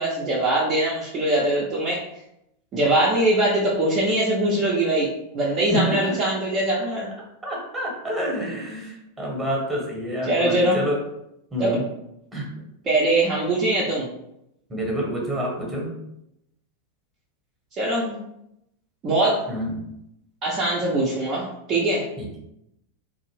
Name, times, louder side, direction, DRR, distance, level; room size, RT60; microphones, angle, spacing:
voice 1, 0.0-2.0 2.7-5.1 5.3-7.1 10.3-10.8 11.6-11.7 12.9-14.1 17.8-18.2 19.0-19.4 20.4-22.1, right 1 dB, 30° right, -5 dB, 0.5 m, -22 dB
voice 2, 5.7-6.2 7.4-11.0 11.5-11.8 12.3-12.5 14.7-15.9 19.5-19.8 22.2-22.4, equal, 10° right, -2 dB, 0.9 m, -28 dB
2.5 x 2.0 x 3.2 m, 0.81 s
figure-of-eight pair, 90°, 0 cm